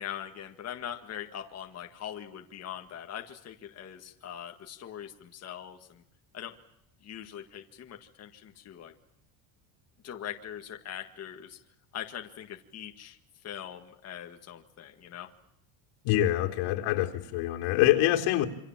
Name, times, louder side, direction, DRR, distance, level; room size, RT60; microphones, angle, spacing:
voice 1, 0.0-6.0 6.3-6.5 7.0-8.9 10.0-11.6 11.9-13.2 13.4-15.3, left 10 dB, 30° left, 4 dB, 1.9 m, -42 dB
voice 2, 16.0-18.5, left 14 dB, 80° left, 3 dB, 3.8 m, -25 dB
27.5 x 26.0 x 7.4 m, 0.75 s
cardioid pair, 175°, 50 cm